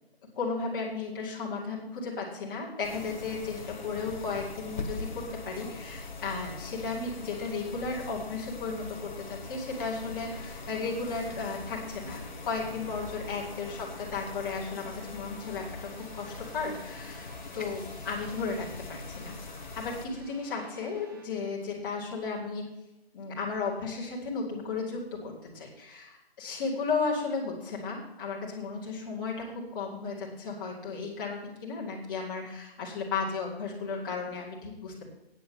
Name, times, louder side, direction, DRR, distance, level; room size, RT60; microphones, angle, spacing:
voice 1, 0.3-9.0 9.3-19.3 19.8-22.7 23.1-35.1, left 4 dB, 20° left, -5 dB, 2.3 m, -34 dB
sound 1, 2.8-20.1, left 3 dB, 45° left, 1.2 m, -42 dB
sound 2, 9.4-21.3, right 2 dB, 20° right, 1.1 m, -53 dB
9.3 x 7.3 x 7.6 m, 0.93 s
hypercardioid pair, 170°, 31 cm